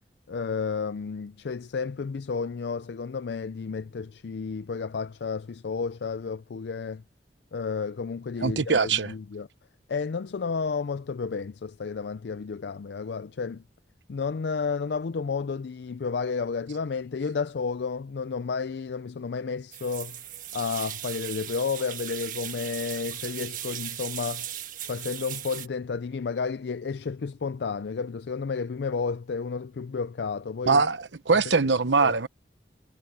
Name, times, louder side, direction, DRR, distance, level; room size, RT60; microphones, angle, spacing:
voice 1, 0.3-7.0 7.5-9.5 9.9-13.6 14.1-20.2 20.5-24.5 24.9-30.8 31.6-31.7 32.0-32.1, left 5 dB, 70° left, 0.4 m, -31 dB
voice 2, 8.4-9.1 30.7-32.3, right 4 dB, 90° right, 1.0 m, -22 dB
sound 1, 19.7-25.7, right 11 dB, 50° right, 1.4 m, -37 dB
head